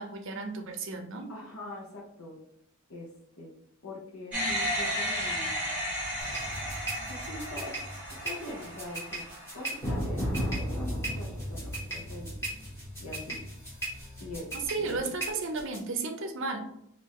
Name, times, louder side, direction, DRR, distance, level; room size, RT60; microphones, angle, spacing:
voice 1, 0.0-1.3 14.7-16.6, right 3 dB, 55° right, 4 dB, 0.6 m, -34 dB
voice 2, 1.3-2.4 2.9-3.1 3.4-3.5 3.8-5.5 7.1-7.7 8.2-9.2 9.5-12.4 13.0-13.4 14.2-14.5 14.8-15.1, left 1 dB, 65° left, -4 dB, 0.8 m, -42 dB
sound 1, 4.3-9.8, equal, 5° right, 1.4 m, -34 dB
sound 2, 6.2-15.8, right 1 dB, 10° left, 1.4 m, -36 dB
3.7 x 2.5 x 3.0 m, 0.75 s
head